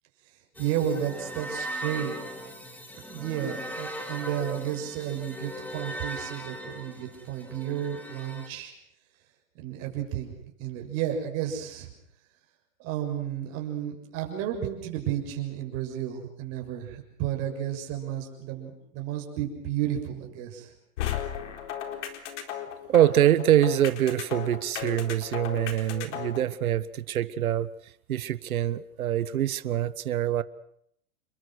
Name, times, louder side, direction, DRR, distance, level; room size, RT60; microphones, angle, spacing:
sound 1, 0.5-8.5, right 1 dB, 5° left, 2.4 m, -39 dB
voice 1, 0.6-2.1 2.9-8.7 9.5-11.9 12.8-20.7, right 10 dB, 35° right, 2 dB, 6.7 m, -32 dB
sound 2, 21.0-26.4, left 10 dB, 55° left, 4.2 m, -35 dB
voice 2, 22.9-27.7 28.1-30.4, right 11 dB, 80° right, 15 dB, 1.5 m, -24 dB
29.0 x 23.0 x 6.5 m, 0.71 s
hypercardioid pair, 155°, 42 cm